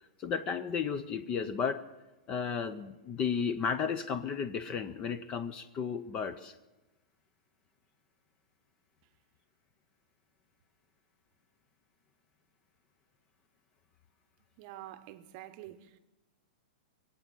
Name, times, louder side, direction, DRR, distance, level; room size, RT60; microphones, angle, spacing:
voice 1, 0.2-1.8 2.3-6.5, left 6 dB, 20° left, 0.4 m, -33 dB
voice 2, 14.6-16.0, right 13 dB, 30° right, 0.8 m, -47 dB
23.0 x 8.5 x 7.5 m
supercardioid pair, 175°, 5 cm